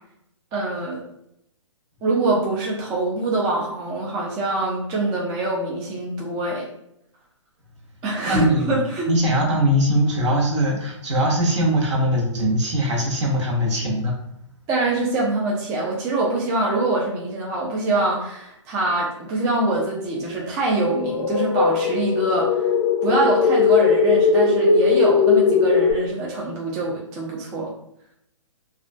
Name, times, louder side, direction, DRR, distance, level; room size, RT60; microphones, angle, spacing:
voice 1, 0.5-1.0 2.0-6.7 8.0-9.1 14.7-22.6 23.0-27.7, right 2 dB, 20° right, -3 dB, 0.3 m, -24 dB
voice 2, 8.3-8.8 9.1-14.1, equal, 65° right, -1 dB, 0.9 m, -21 dB
sound 1, 20.9-25.9, left 5 dB, 40° left, 0.5 m, -19 dB
2.3 x 2.2 x 2.4 m, 0.76 s
hypercardioid pair, 140°, 17 cm